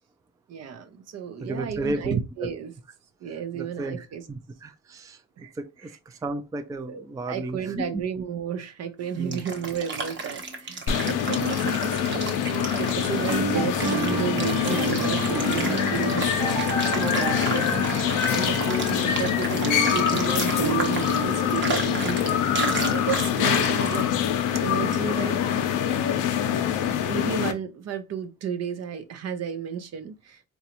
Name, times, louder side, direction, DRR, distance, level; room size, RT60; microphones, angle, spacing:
voice 1, 0.5-2.7 3.2-4.2 5.4-5.5 6.9-16.4 16.7-18.6 18.9-24.1 24.5-25.4 27.1-30.4, right 7 dB, 55° right, 0.6 m, -33 dB
voice 2, 1.4-2.5 3.5-8.0 9.1-9.4, right 2 dB, 10° right, 0.4 m, -33 dB
sound 1, 9.0-24.0, right 3 dB, 40° right, 0.9 m, -33 dB
sound 2, 10.9-27.5, left 9 dB, 85° left, 0.6 m, -25 dB
sound 3, 13.1-24.4, right 3 dB, 90° right, 1.0 m, -32 dB
4.0 x 2.3 x 2.9 m
cardioid pair, 90°, 30 cm